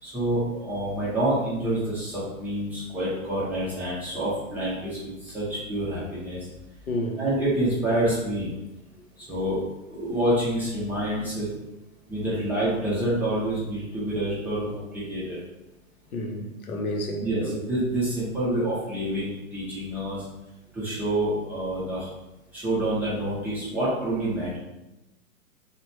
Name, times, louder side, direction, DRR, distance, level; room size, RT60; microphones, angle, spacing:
voice 1, 0.0-6.5 7.2-8.5 9.2-9.6 9.9-11.5 12.1-15.4 17.2-20.3 20.7-22.1 22.5-24.6, right 1 dB, 5° right, -10 dB, 0.4 m, -27 dB
voice 2, 6.9-7.2 12.3-12.4 16.1-17.6, left 1 dB, 80° left, 3 dB, 0.8 m, -30 dB
3.9 x 2.0 x 3.1 m, 0.99 s
figure-of-eight pair, 115°, 42 cm